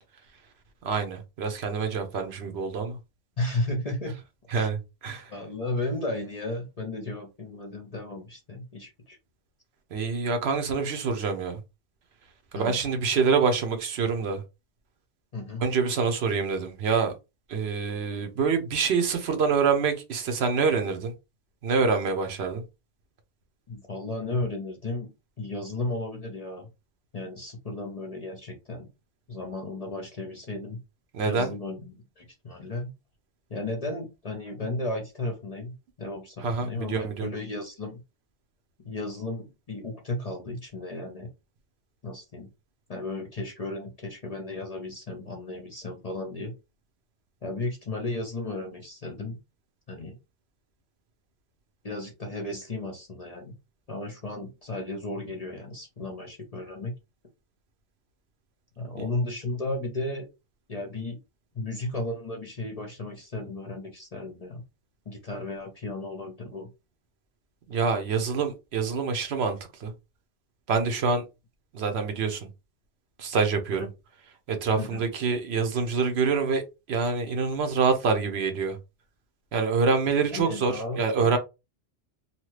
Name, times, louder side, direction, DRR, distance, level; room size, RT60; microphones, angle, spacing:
voice 1, 0.8-3.0 4.5-5.2 9.9-11.6 12.5-14.4 15.6-17.1 17.5-21.1 21.6-22.6 31.1-31.5 36.4-37.3 67.7-69.9 70.7-71.2 71.7-72.5 73.2-73.9 74.5-76.6 76.9-78.8 79.5-81.4, right 5 dB, 65° right, 0.9 m, -26 dB
voice 2, 3.4-4.2 4.5-4.7 5.3-9.2 12.5-12.8 15.3-15.6 23.7-26.7 27.1-28.9 29.3-30.8 31.2-32.9 33.5-38.0 38.8-41.3 42.0-42.5 42.9-46.6 47.4-49.4 49.9-50.2 51.8-53.6 53.9-56.9 58.8-60.3 60.7-61.2 61.5-64.6 65.1-66.7 73.7-73.9 74.8-75.0 80.3-81.4, left 2 dB, 40° left, 0.6 m, -34 dB
2.8 x 2.2 x 3.1 m
omnidirectional pair, 1.2 m